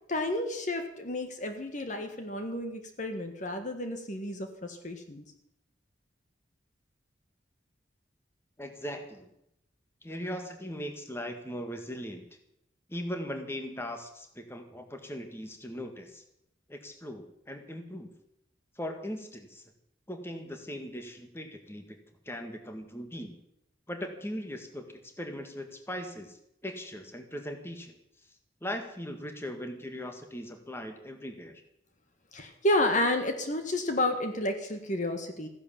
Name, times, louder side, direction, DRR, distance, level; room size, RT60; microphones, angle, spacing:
voice 1, 0.1-5.2 32.3-35.5, left 1 dB, 40° left, 6 dB, 1.5 m, -31 dB
voice 2, 8.6-9.3 10.0-12.2 12.9-16.2 16.7-18.1 18.7-19.6 20.1-22.0 22.2-23.4 23.9-27.9 28.6-31.6, equal, 15° left, 5 dB, 1.8 m, -39 dB
15.5 x 10.5 x 7.4 m, 0.79 s
head